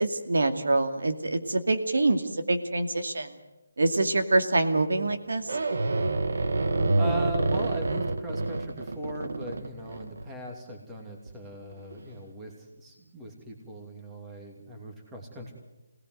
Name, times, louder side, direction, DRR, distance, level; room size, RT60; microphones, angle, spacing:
voice 1, 0.0-3.3 3.8-5.5, right 2 dB, 85° right, 7 dB, 2.4 m, -25 dB
sound 1, 5.5-10.5 11.3-11.4 11.7-12.0, right 2 dB, 65° right, 1.7 m, -27 dB
voice 2, 7.0-15.5, right 1 dB, 10° right, 1 dB, 2.8 m, -39 dB
24.5 x 18.5 x 7.9 m, 1.0 s
hypercardioid pair, 170°, 0 cm